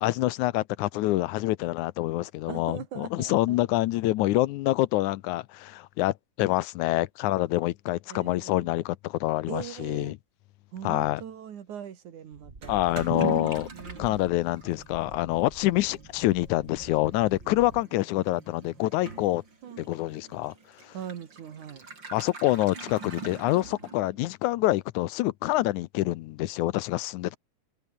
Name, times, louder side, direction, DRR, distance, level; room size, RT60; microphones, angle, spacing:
voice 1, 0.0-10.2 10.8-11.2 12.7-13.7 14.0-19.4 19.8-20.5 20.8-20.9 22.1-27.4, left 17 dB, 80° left, 2.1 m, -26 dB
voice 2, 2.5-3.6 8.1-8.7 9.5-10.1 10.7-12.8 13.7-14.3 19.6-19.8 20.9-21.9, right 9 dB, 75° right, 3.5 m, -41 dB
sound 1, 12.3-17.8, right 3 dB, 20° right, 2.7 m, -48 dB
Toilet flush / Liquid, 12.6-24.3, right 3 dB, 35° right, 4.8 m, -41 dB
omnidirectional pair, 3.5 m